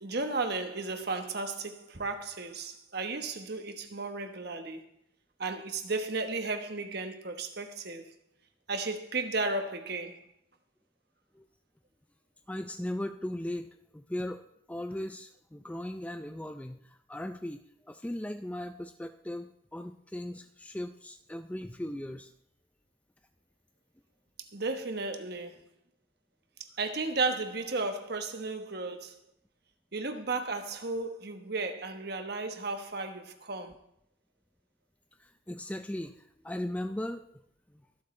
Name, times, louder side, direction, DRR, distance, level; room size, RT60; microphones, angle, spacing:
voice 1, 0.0-4.8 5.4-8.1 8.7-10.2 24.5-25.6 26.6-29.2 29.9-33.7, right 3 dB, 50° right, 1.2 m, -34 dB
voice 2, 12.5-22.3 35.2-37.3 37.7-37.9, left 1 dB, 5° left, 0.4 m, -38 dB
23.5 x 8.0 x 3.2 m
head